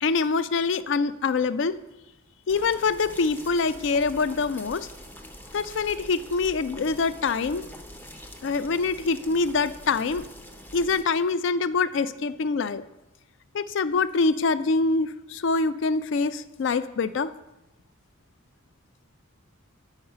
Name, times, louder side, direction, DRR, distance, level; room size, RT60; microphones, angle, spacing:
voice 1, 0.0-1.8 2.5-4.9 5.5-7.6 8.4-10.2 10.7-12.8 13.5-17.3, left 4 dB, 60° left, 14 dB, 0.4 m, -25 dB
sound 1, 2.5-11.0, left 1 dB, 10° left, 0.5 m, -45 dB
9.8 x 4.8 x 5.5 m, 0.96 s
head